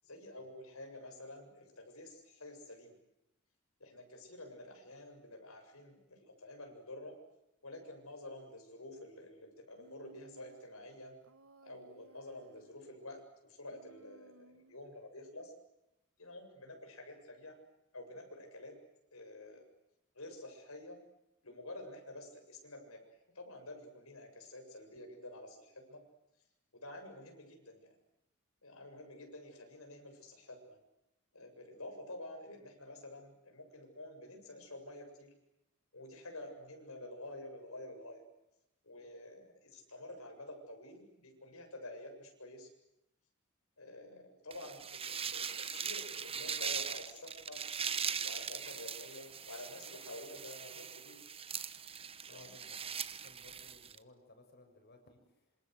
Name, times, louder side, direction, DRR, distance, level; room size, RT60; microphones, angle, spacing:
voice 1, 0.0-3.0 3.8-7.2 7.6-11.2 11.6-15.5 16.2-17.6 17.9-18.8 19.1-19.6 20.1-21.0 21.4-26.0 26.7-28.0 28.6-30.8 31.3-35.3 35.9-38.2 38.8-42.7 43.8-47.6 48.2-51.2 52.3-52.5, left 1 dB, 80° left, 4 dB, 7.6 m, -49 dB
Human voice, 9.8-10.7 11.2-12.8 13.7-14.9, right 2 dB, 70° right, 1.7 m, -62 dB
sound 1, 44.5-54.0, right 7 dB, 25° right, 1.1 m, -40 dB
voice 2, 52.3-55.6, left 2 dB, 50° left, 4 dB, 6.8 m, -60 dB
27.0 x 27.0 x 8.1 m, 0.88 s
head